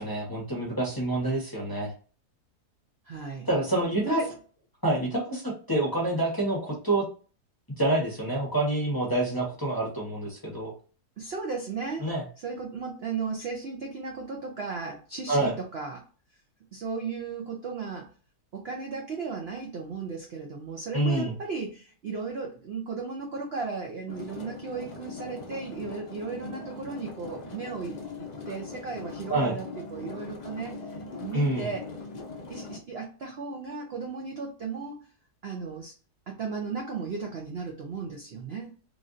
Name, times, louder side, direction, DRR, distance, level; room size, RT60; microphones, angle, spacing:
voice 1, 0.0-1.9 3.5-4.2 4.8-7.1 7.8-10.7 12.0-12.2 15.3-15.5 20.9-21.3 29.3-29.6 31.3-31.7, right 2 dB, 15° left, -6 dB, 0.8 m, -27 dB
voice 2, 3.0-3.5 4.0-4.3 11.2-12.1 12.4-16.1 16.7-18.1 18.5-31.9 32.5-35.1 35.4-35.9 36.3-38.7, right 4 dB, 65° right, 1 dB, 0.6 m, -35 dB
sound 1, 24.1-32.8, left 3 dB, 80° left, 0.3 m, -41 dB
3.1 x 2.5 x 2.5 m, 0.38 s
omnidirectional pair, 1.7 m